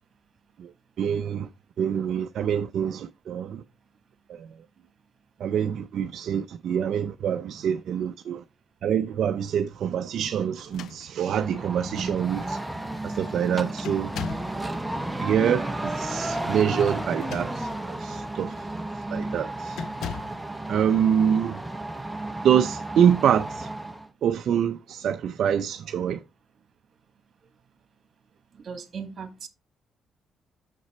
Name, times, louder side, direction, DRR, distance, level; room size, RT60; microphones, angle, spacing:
voice 1, 1.0-1.5 1.8-3.6 4.4-4.5 5.4-8.4 8.8-12.6 13.0-14.1 15.2-18.5 19.1-19.8 20.7-21.6 22.4-23.7 24.2-26.2, right 8 dB, 65° right, 0.4 m, -25 dB
sound 1, 10.6-11.5 12.4-12.5 12.8-13.2 13.8-14.6 17.0-17.9 18.4-18.6 19.7-20.4, left 8 dB, 75° left, 0.4 m, -39 dB
sound 2, 11.2-24.1, right 1 dB, 5° right, 0.8 m, -33 dB
voice 2, 28.6-29.5, right 6 dB, 50° right, 1.7 m, -37 dB
6.7 x 6.0 x 4.2 m
cardioid pair, 90°, 0 cm